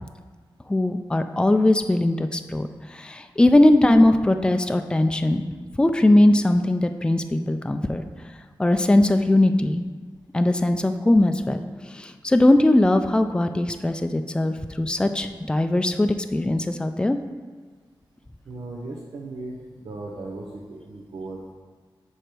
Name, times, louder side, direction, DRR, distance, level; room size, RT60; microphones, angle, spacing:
voice 1, 0.7-5.5 5.8-8.0 8.6-9.8 10.3-11.6 11.9-17.2, left 1 dB, 10° left, 7 dB, 0.3 m, -20 dB
voice 2, 18.4-21.5, right 2 dB, 90° right, -4 dB, 0.8 m, -37 dB
6.4 x 5.0 x 4.5 m, 1.5 s
wide cardioid pair, 100°, 9 cm